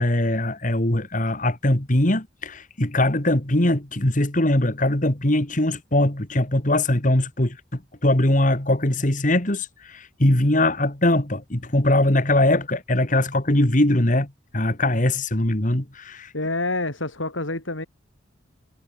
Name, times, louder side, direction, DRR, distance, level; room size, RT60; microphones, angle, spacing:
voice 1, 0.0-16.3, left 1 dB, 40° left, 2.4 m, -21 dB
voice 2, 16.3-17.9, left 2 dB, 90° left, 5.8 m, -27 dB
head